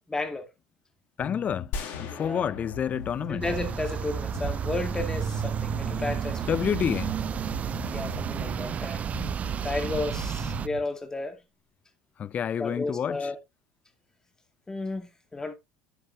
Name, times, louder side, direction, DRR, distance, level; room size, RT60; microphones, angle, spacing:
voice 1, 0.1-0.5 2.1-2.5 3.3-6.5 7.9-9.2 9.6-11.4 12.6-13.4 14.7-15.5, left 3 dB, 15° left, 2.2 m, -33 dB
sound 1, 1.2-10.8, left 3 dB, 85° left, 3.1 m, -41 dB
voice 2, 1.2-1.7 2.0-3.4 6.5-7.1 12.2-13.2, left 8 dB, 35° left, 0.4 m, -28 dB
sound 2, 1.7-4.6, left 6 dB, 55° left, 2.6 m, -40 dB
sound 3, 3.4-10.7, right 8 dB, 35° right, 0.4 m, -31 dB
10.0 x 7.9 x 2.7 m
hypercardioid pair, 85°, 4 cm